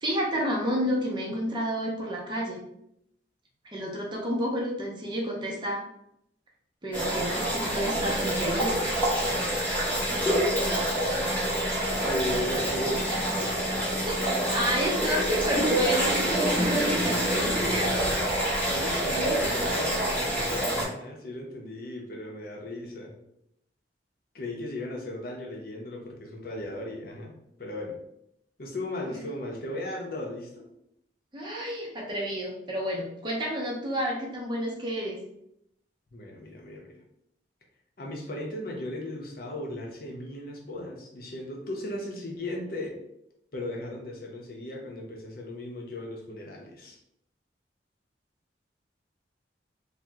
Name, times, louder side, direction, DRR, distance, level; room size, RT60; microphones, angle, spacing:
voice 1, 0.0-2.6 3.6-5.8 6.8-8.8 14.0-14.2 14.5-18.1 31.3-35.2, right 1 dB, 25° right, -2 dB, 0.6 m, -30 dB
sound 1, 6.9-20.8, equal, 10° left, 0.7 m, -27 dB
voice 2, 12.0-14.0 18.7-23.2 24.3-28.0 28.6-30.7 36.1-36.9 38.0-42.9 43.5-47.0, left 1 dB, 55° left, 0 dB, 0.6 m, -36 dB
2.7 x 2.1 x 3.4 m, 0.77 s
head